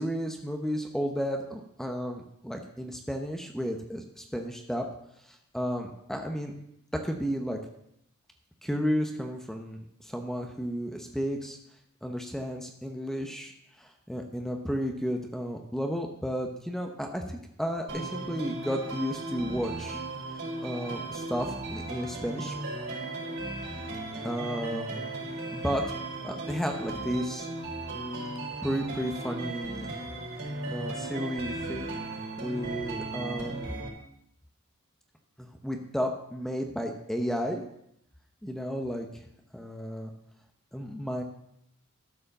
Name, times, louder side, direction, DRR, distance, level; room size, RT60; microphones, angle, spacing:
voice 1, 0.0-4.9 5.2-6.5 6.9-7.6 8.6-11.6 12.0-20.0 20.3-22.6 24.2-25.0 25.5-25.8 26.2-27.5 28.6-29.9 30.7-31.9 32.4-33.9 35.4-37.6 38.4-39.3 39.5-40.1 40.7-41.2, equal, ahead, 3 dB, 0.8 m, -33 dB
sound 1, 17.9-33.9, right 2 dB, 70° right, 4.0 m, -36 dB
12.5 x 4.9 x 6.5 m, 0.75 s
head